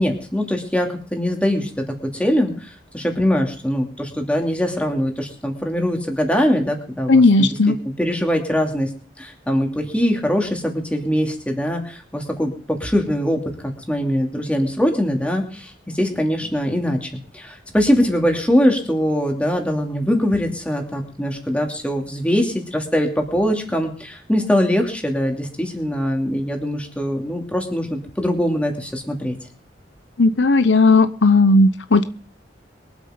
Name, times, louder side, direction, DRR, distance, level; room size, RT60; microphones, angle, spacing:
voice 1, 0.0-1.7 2.1-7.5 8.0-8.9 9.2-29.4, equal, 5° left, 2 dB, 2.7 m, -22 dB
voice 2, 7.1-7.8 30.2-32.0, left 3 dB, 85° left, 13 dB, 0.8 m, -14 dB
23.0 x 8.2 x 5.2 m, 0.42 s
head